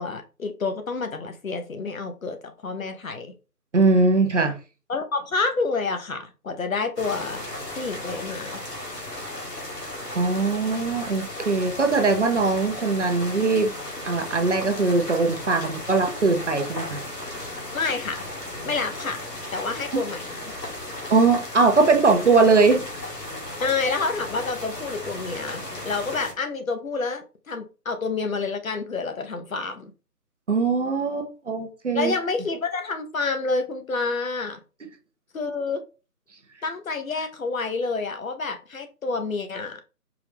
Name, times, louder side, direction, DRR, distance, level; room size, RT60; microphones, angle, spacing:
voice 1, 0.0-3.3 4.9-7.4 7.7-8.6 17.7-18.3 18.6-19.2 19.5-20.5 23.6-29.9 31.9-34.6 35.3-35.8 36.6-39.8, left 4 dB, 55° left, 0.8 m, -28 dB
voice 2, 3.7-4.6 10.1-13.7 14.0-17.0 21.1-22.8 30.5-32.1, right 4 dB, 50° right, 0.7 m, -21 dB
sound 1, 7.0-26.3, left 1 dB, 85° left, 2.1 m, -35 dB
4.7 x 2.6 x 3.4 m
figure-of-eight pair, 155°, 48 cm